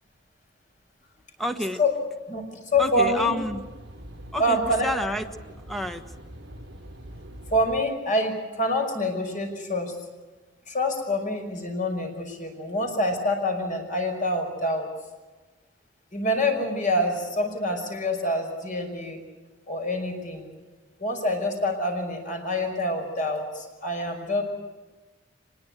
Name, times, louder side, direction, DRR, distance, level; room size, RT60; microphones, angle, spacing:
voice 1, 1.4-1.8 2.8-3.6 4.3-5.3 5.7-6.0, left 1 dB, ahead, 7 dB, 1.4 m, -28 dB
voice 2, 2.3-3.3 4.4-5.1 7.5-9.9 10.7-14.9 16.1-19.2 19.7-20.5 21.0-24.4, left 1 dB, 45° left, 3 dB, 5.7 m, -26 dB
sound 1, 2.7-7.8, equal, 70° right, 4.8 m, -43 dB
24.5 x 21.0 x 8.1 m, 1.2 s
head